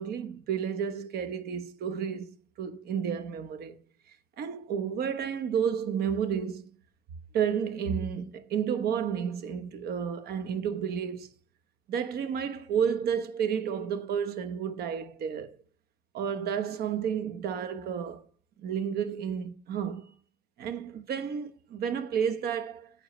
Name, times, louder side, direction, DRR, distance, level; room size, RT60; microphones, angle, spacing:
voice 1, 0.0-2.3 2.6-3.8 4.4-6.7 7.3-11.3 11.9-15.5 16.1-18.2 18.6-20.1 20.6-22.9, right 7 dB, 65° right, 1.1 m, -31 dB
9.4 x 8.6 x 3.2 m
cardioid pair, 110°, 17 cm